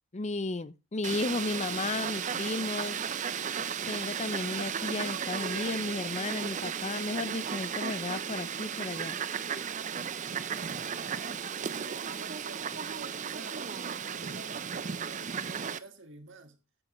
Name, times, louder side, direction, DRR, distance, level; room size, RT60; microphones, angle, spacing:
voice 1, 0.1-3.0 3.6-9.2, left 3 dB, 35° left, 0.6 m, -34 dB
Fowl, 1.0-15.8, right 7 dB, 35° right, 0.5 m, -35 dB
voice 2, 11.5-16.6, right 3 dB, 60° right, 1.6 m, -49 dB
9.8 x 8.6 x 3.0 m
head